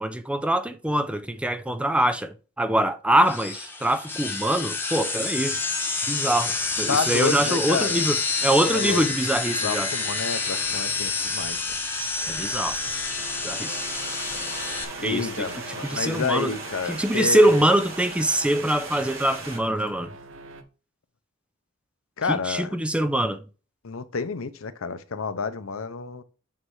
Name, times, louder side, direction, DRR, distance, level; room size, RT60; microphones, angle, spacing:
voice 1, 0.0-5.6 6.1-9.9 12.3-12.8 13.4-13.8 15.0-15.5 15.8-16.5 16.9-20.1 22.3-23.4, right 1 dB, 5° right, 0.5 m, -24 dB
sound 1, 3.3-14.8, left 4 dB, 10° left, 1.1 m, -28 dB
sound 2, 6.5-20.6, right 2 dB, 65° right, 0.9 m, -46 dB
voice 2, 6.9-8.0 8.7-9.0 9.6-11.6 15.0-17.6 22.2-22.8 23.8-26.2, left 5 dB, 85° left, 0.7 m, -29 dB
sound 3, 13.1-19.6, right 3 dB, 85° right, 2.2 m, -37 dB
8.8 x 3.3 x 4.6 m
head